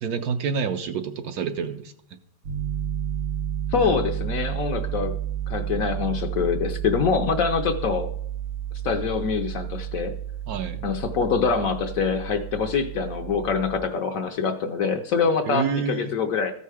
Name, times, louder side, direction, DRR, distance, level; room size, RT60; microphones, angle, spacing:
voice 1, 0.0-1.9 10.5-10.9 15.5-16.1, right 6 dB, 70° right, 8 dB, 1.0 m, -28 dB
Piano, 2.4-13.8, right 10 dB, 90° right, 2.0 m, -31 dB
voice 2, 3.7-5.1 5.5-8.1 8.8-10.1 10.8-16.5, left 5 dB, 65° left, 7 dB, 0.9 m, -25 dB
14.0 x 5.5 x 4.8 m, 0.71 s
omnidirectional pair, 1.9 m